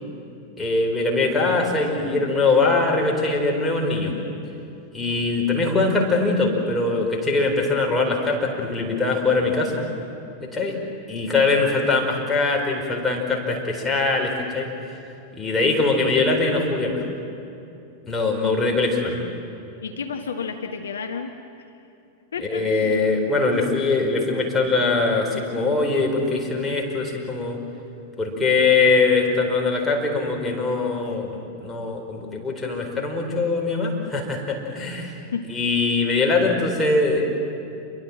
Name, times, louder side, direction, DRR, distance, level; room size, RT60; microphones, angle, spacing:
voice 1, 0.6-4.1 4.9-9.9 10.4-10.8 11.1-14.7 15.3-17.0 18.1-19.2 22.4-27.6 28.2-35.2 35.5-37.3, left 3 dB, 10° left, 0 dB, 4.8 m, -22 dB
voice 2, 19.8-21.3 21.6-21.7 22.3-23.0 35.3-35.5, left 6 dB, 65° left, 5 dB, 1.2 m, -31 dB
27.5 x 23.0 x 7.6 m, 2.7 s
figure-of-eight pair, 90°, 0 cm